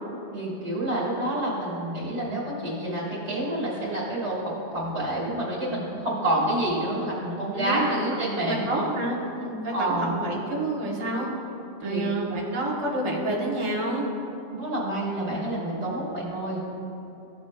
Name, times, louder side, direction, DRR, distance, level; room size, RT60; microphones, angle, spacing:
voice 1, 0.3-8.9 9.7-10.1 11.8-12.6 14.5-16.6, right 1 dB, 70° right, -7 dB, 1.8 m, -28 dB
voice 2, 7.5-8.0 8.3-11.3 11.8-14.1, right 2 dB, 30° right, -3 dB, 0.9 m, -29 dB
13.5 x 5.1 x 2.2 m, 2.9 s
omnidirectional pair, 1.2 m